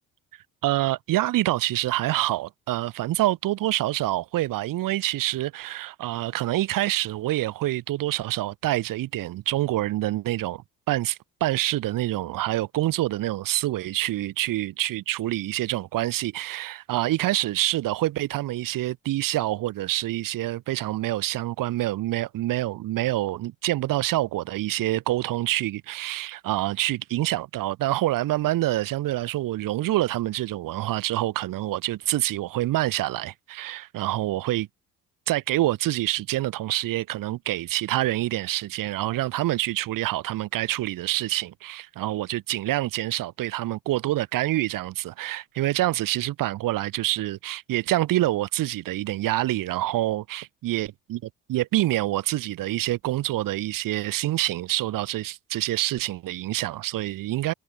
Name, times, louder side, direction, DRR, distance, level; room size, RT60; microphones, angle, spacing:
voice 1, 0.6-34.7 35.3-51.2 51.5-57.5, right 15 dB, 70° right, 6.8 m, -26 dB
supercardioid pair, 70°, 34 cm